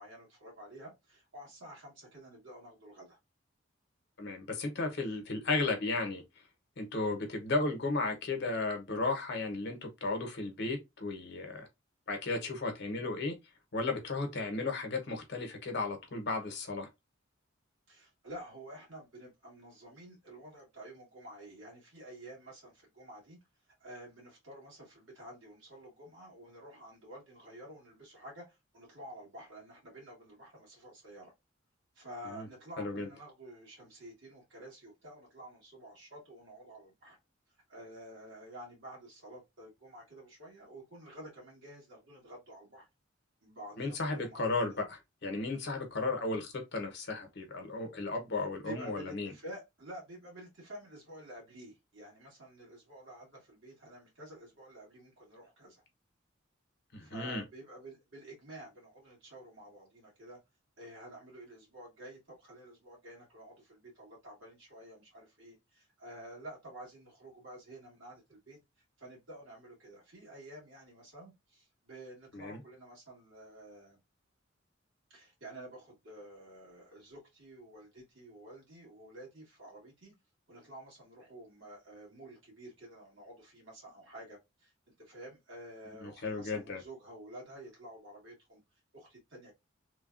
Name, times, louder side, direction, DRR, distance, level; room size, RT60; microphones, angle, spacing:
voice 1, 0.0-3.2 5.1-5.2 17.9-23.4 23.8-31.3 32.0-37.2 37.7-42.9 43.4-44.8 48.4-55.8 57.0-60.4 60.8-68.6 69.0-74.0 75.1-80.1 80.5-88.6 88.9-89.5, right 1 dB, 70° right, 1.7 m, -50 dB
voice 2, 4.2-6.2 6.8-11.7 12.1-13.4 13.7-16.9 32.3-32.5 32.8-33.1 43.8-49.3 56.9-57.4 72.3-72.6 86.0-86.8, left 3 dB, 60° left, 0.8 m, -34 dB
3.1 x 2.3 x 2.4 m
head